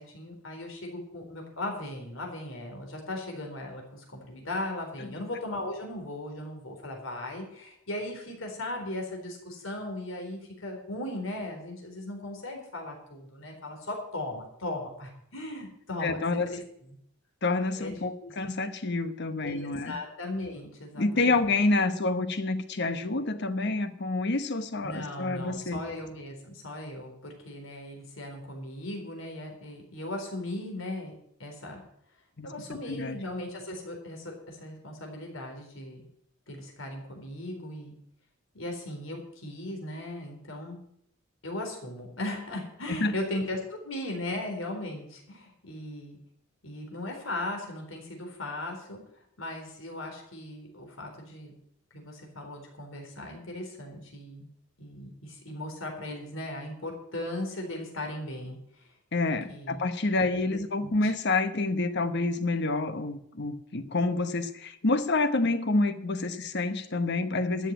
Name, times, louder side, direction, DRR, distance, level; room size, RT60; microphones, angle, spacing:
voice 1, 0.0-16.6 17.8-18.3 19.4-21.4 24.8-31.8 32.4-36.0 36.5-37.9 38.5-40.8 41.4-46.2 46.6-51.6 51.9-54.5 54.8-58.9 59.5-59.8 60.2-61.1, left 1 dB, 80° left, 2 dB, 4.1 m, -38 dB
voice 2, 16.0-16.5 17.4-20.0 21.0-25.8 32.4-32.5 32.9-33.2 42.9-43.1 59.1-67.7, left 3 dB, 60° left, 11 dB, 1.1 m, -28 dB
13.0 x 7.2 x 9.0 m, 0.73 s
head